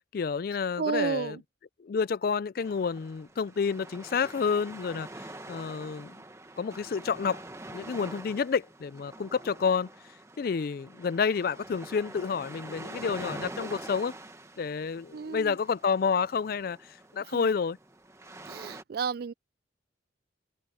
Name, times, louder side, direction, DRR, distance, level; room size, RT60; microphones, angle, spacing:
voice 1, 0.1-1.4 1.8-6.1 6.6-7.4 7.7-9.9 10.4-14.1 14.6-16.8 17.1-17.8, left 5 dB, 50° left, 0.3 m, -29 dB
voice 2, 0.8-1.4 15.1-15.6 17.2-17.5 18.5-19.3, right 5 dB, 55° right, 0.3 m, -32 dB
sound 1, 2.6-18.8, right 2 dB, 15° right, 1.3 m, -45 dB
head